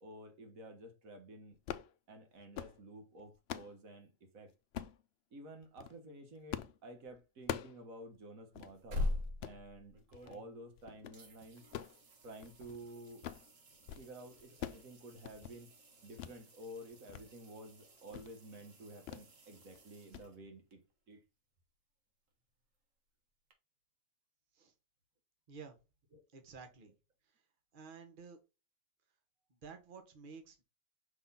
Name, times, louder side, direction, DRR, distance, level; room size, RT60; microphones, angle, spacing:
voice 1, 0.0-1.6 2.1-4.5 5.3-9.0 9.4-10.0 10.2-11.6 12.2-13.3 13.9-15.7 16.0-20.8 21.1-21.2 26.1-26.2, right 1 dB, 90° right, 1.7 m, -52 dB
sound 1, 1.5-1.9 2.4-2.8 3.2-3.7 4.7-5.0 5.6-5.9 6.5-6.8 7.1-7.8 8.1-8.2 8.5-8.7 9.2-9.6 10.1-10.4 10.8-11.2 11.6-12.8 13.1-13.5 13.7-14.1 14.3-14.9 15.1-15.6 16.2-16.4 16.8-17.2 17.6-17.7 18.1-18.3 19.1-19.3 19.6-19.8 20.1-20.3, left 10 dB, 65° left, 0.7 m, -44 dB
sound 2, 8.6-10.8 11.1-20.7 23.5-23.6, left 2 dB, 70° right, 1.8 m, -45 dB
voice 2, 26.3-26.9 27.2-27.4 27.7-28.4 29.5-30.6, right 5 dB, 40° right, 1.2 m, -52 dB
6.0 x 3.8 x 4.1 m
omnidirectional pair, 1.4 m